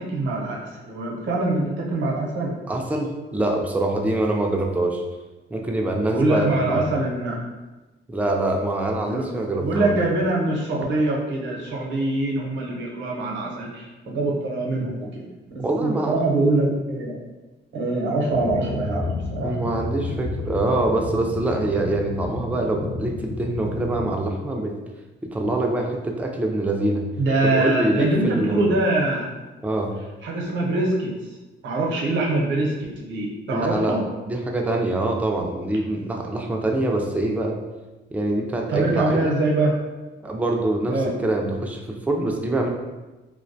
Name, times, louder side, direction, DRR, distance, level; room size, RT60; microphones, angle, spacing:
voice 1, 0.0-2.5 6.1-7.4 9.1-9.3 9.6-15.1 15.5-17.2 17.7-19.6 27.2-29.3 30.2-31.3 31.6-34.0 38.7-39.8 40.9-41.1, right 2 dB, 70° right, -2 dB, 0.6 m, -24 dB
voice 2, 2.7-5.0 5.5-6.8 8.1-9.9 15.6-16.1 19.4-24.7 25.2-27.0 27.4-28.6 29.6-29.9 33.5-34.0 34.3-37.6 38.1-39.3 40.2-42.7, right 2 dB, 5° right, 1 dB, 0.3 m, -24 dB
sound 1, 18.3-24.1, left 3 dB, 60° left, 0.5 m, -31 dB
2.3 x 2.1 x 2.6 m, 1.1 s
cardioid pair, 90°, 20 cm